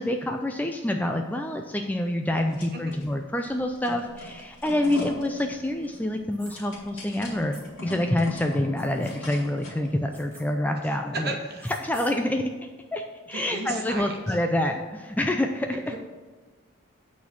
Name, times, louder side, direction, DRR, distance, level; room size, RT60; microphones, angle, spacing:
voice 1, 0.0-7.5 7.8-11.3 11.6-12.5 12.9-15.9, left 1 dB, 10° left, 4 dB, 0.3 m, -27 dB
sound 1, 2.3-3.1 3.4-9.9, left 1 dB, 60° left, 2.4 m, -40 dB
sound 2, 6.3-6.6 7.5-7.6 8.8-9.1 10.1-10.4 11.6-12.1, right 1 dB, 10° right, 1.8 m, -47 dB
voice 2, 11.2-11.7 13.3-14.2 15.9-16.0, right 2 dB, 50° right, 2 dB, 1.3 m, -34 dB
8.4 x 4.2 x 6.9 m, 1.3 s
head